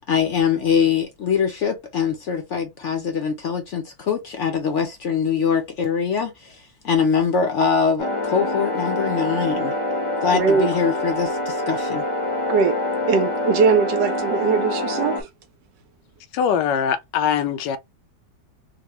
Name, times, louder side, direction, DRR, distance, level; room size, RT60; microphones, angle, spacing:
voice 1, 0.1-9.7 10.2-12.0, left 6 dB, 60° left, 0.8 m, -23 dB
sound 1, 8.0-15.2, left 1 dB, 30° left, 0.6 m, -25 dB
voice 2, 10.3-10.7 12.5-12.8 13.1-15.3, right 5 dB, 80° right, 1.5 m, -20 dB
voice 3, 16.3-17.8, left 8 dB, 85° left, 1.2 m, -22 dB
4.0 x 2.2 x 2.9 m
omnidirectional pair, 1.9 m